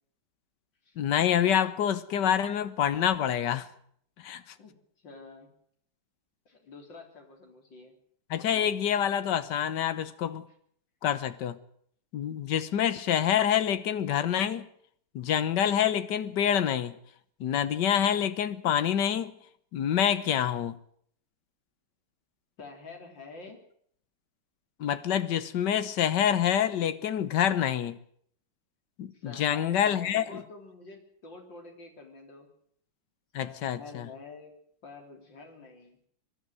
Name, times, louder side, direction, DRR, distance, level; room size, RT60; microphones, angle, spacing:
voice 1, 1.0-3.7 4.2-4.5 8.3-10.5 11.0-11.6 12.1-14.7 15.1-16.9 17.4-19.4 19.7-20.8 24.8-28.0 29.0-30.4 33.3-34.1, left 9 dB, 75° left, 1.7 m, -27 dB
voice 2, 4.5-5.5 6.5-8.0 22.6-23.6 29.1-32.5 33.4-34.5 34.8-36.0, left 3 dB, 90° left, 4.3 m, -47 dB
23.5 x 12.0 x 9.4 m
omnidirectional pair, 1.9 m